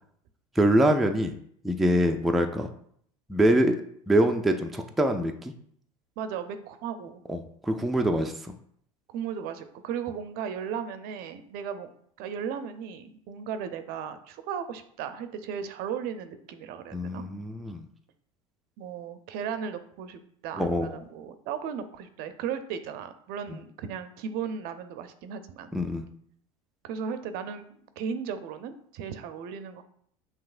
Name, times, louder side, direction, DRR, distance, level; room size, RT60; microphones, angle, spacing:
voice 1, 0.6-1.3 1.6-2.7 3.3-3.8 4.1-5.5 7.3-8.5 16.9-17.9 20.6-21.0 23.5-23.6 25.7-26.1, right 1 dB, ahead, 4 dB, 0.3 m, -24 dB
voice 2, 6.2-7.2 9.1-11.9 12.2-17.2 18.8-25.7 26.8-29.8, right 7 dB, 55° right, 10 dB, 0.5 m, -36 dB
5.6 x 2.8 x 2.4 m, 0.65 s
hypercardioid pair, 85°, 18 cm